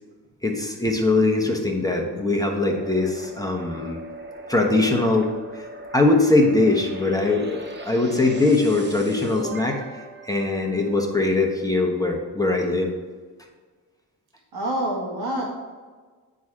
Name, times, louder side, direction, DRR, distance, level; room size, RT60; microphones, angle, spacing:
voice 1, 0.4-4.0 4.5-5.6 5.9-12.9, left 2 dB, 10° left, 1 dB, 1.1 m, -21 dB
sound 1, 2.7-11.3, right 2 dB, 30° right, 1.0 m, -40 dB
voice 2, 14.5-15.5, right 1 dB, 85° right, -1 dB, 1.7 m, -26 dB
9.2 x 4.1 x 4.8 m, 1.4 s
cardioid pair, 100°, 38 cm